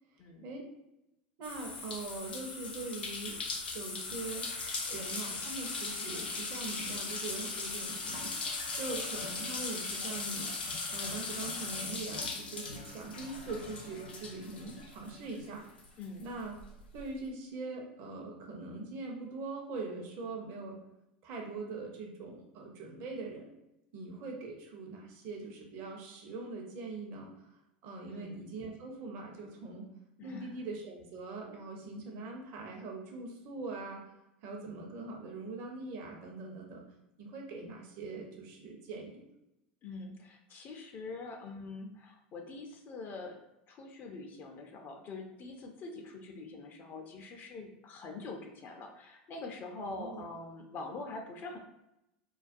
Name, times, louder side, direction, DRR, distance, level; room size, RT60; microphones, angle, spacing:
voice 1, 0.1-0.7 1.4-3.4 3.7-8.4 8.8-10.5 10.9-15.6 16.2-16.5 16.9-20.8 21.2-23.5 23.9-29.9 30.2-34.0 34.4-36.8 37.2-39.3 49.8-50.3, right 3 dB, 55° right, 0 dB, 0.6 m, -42 dB
sound 1, 1.4-15.5 15.8-17.0, left 3 dB, 90° left, 0.5 m, -39 dB
voice 2, 16.0-16.3 28.1-28.4 30.2-30.6 39.8-43.4 43.7-51.6, left 3 dB, 40° left, 3 dB, 0.4 m, -44 dB
2.3 x 2.2 x 2.5 m, 0.88 s
hypercardioid pair, 95°, 5 cm